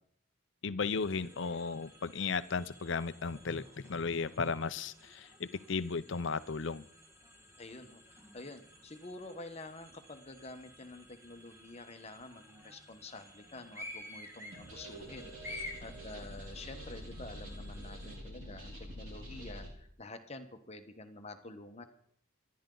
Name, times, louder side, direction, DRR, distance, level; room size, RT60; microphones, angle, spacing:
voice 1, 0.6-6.8, left 4 dB, 60° left, 14 dB, 0.6 m, -35 dB
sound 1, 0.8-18.2, left 1 dB, 10° right, 1.7 m, -52 dB
voice 2, 7.6-21.8, left 2 dB, 30° left, 7 dB, 1.2 m, -48 dB
sound 2, 14.5-19.7, equal, 70° right, 4.4 m, -46 dB
27.5 x 10.5 x 3.9 m, 0.67 s
head